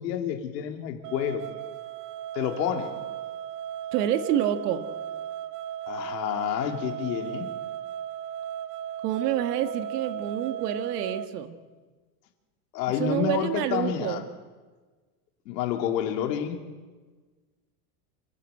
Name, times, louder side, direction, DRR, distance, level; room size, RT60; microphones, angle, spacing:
voice 1, 0.0-1.5 2.3-2.9 5.9-7.5 12.7-14.2 15.5-16.6, left 10 dB, 75° left, 5 dB, 2.7 m, -29 dB
sound 1, 1.0-11.3, right 10 dB, 30° right, 0.7 m, -36 dB
voice 2, 3.9-4.9 9.0-11.6 13.0-14.2, right 11 dB, 70° right, 8 dB, 1.9 m, -28 dB
27.0 x 12.5 x 9.1 m, 1.4 s
supercardioid pair, 175°, 49 cm